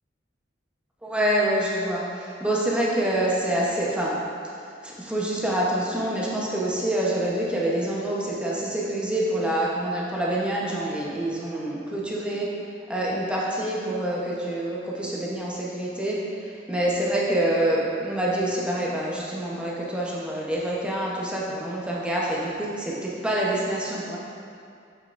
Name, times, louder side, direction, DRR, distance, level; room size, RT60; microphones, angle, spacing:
voice 1, 1.0-4.1 4.8-12.5 12.9-16.2 16.7-24.2, right 1 dB, 5° right, -5 dB, 0.9 m, -26 dB
7.3 x 6.5 x 2.5 m, 2.4 s
head